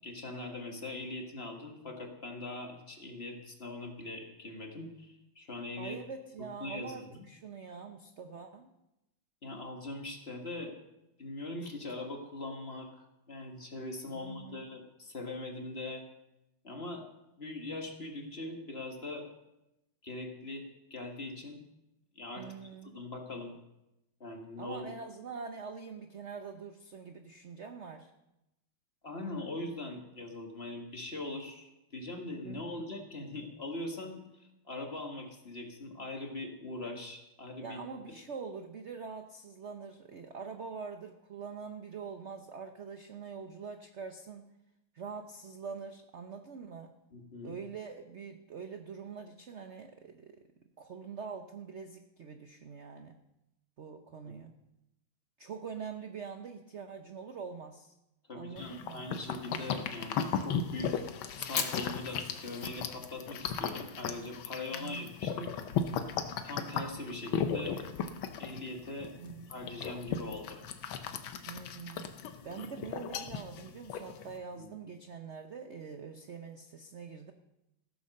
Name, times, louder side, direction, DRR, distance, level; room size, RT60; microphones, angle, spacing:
voice 1, 0.0-6.0 6.6-7.2 9.4-10.7 11.2-12.9 13.3-16.0 16.6-17.1 17.4-19.3 20.0-21.6 22.2-22.5 22.8-23.5 24.2-24.8 29.0-37.8 47.1-47.5 54.2-54.3 58.3-61.0 61.3-65.5 66.4-67.8 68.4-69.1 69.5-70.6 74.5-74.7, left 2 dB, 30° left, 2 dB, 1.9 m, -41 dB
voice 2, 5.8-8.7 14.1-14.7 22.4-23.0 24.6-28.1 32.4-32.9 37.6-44.4 44.9-46.9 47.4-50.5 50.8-53.2 53.8-54.5 55.4-58.0 58.3-59.0 64.7-65.1 69.2-69.5 71.5-72.1 72.4-77.3, right 5 dB, 55° right, 6 dB, 0.8 m, -44 dB
sound 1, 58.6-74.4, left 7 dB, 85° left, 1.7 m, -36 dB
Fire, 60.5-72.0, left 6 dB, 65° left, 2.2 m, -48 dB
15.5 x 9.7 x 6.6 m, 0.90 s
omnidirectional pair, 2.2 m